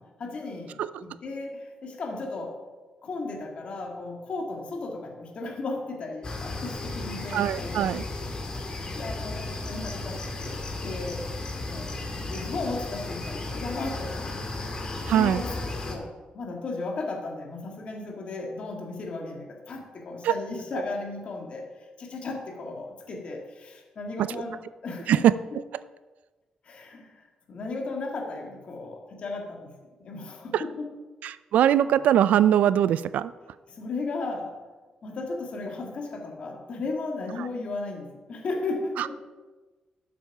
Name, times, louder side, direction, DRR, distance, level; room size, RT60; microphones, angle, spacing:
voice 1, 0.0-2.6 3.0-8.0 8.3-8.5 8.9-11.3 11.7-14.2 14.5-14.7 14.9-15.5 15.9-24.6 24.8-25.2 25.5-25.6 26.6-30.9 33.7-34.6 35.0-39.2, left 3 dB, 50° left, 1 dB, 1.9 m, -35 dB
sound 1, 6.2-16.0, left 2 dB, 35° left, 1.7 m, -34 dB
voice 2, 7.3-8.0 15.1-15.4 20.2-20.3 25.1-25.3 30.5-30.6 31.2-33.3 39.0-39.1, right 10 dB, 85° right, 16 dB, 0.3 m, -21 dB
12.5 x 7.4 x 4.8 m, 1.3 s
cardioid pair, 140°, 3 cm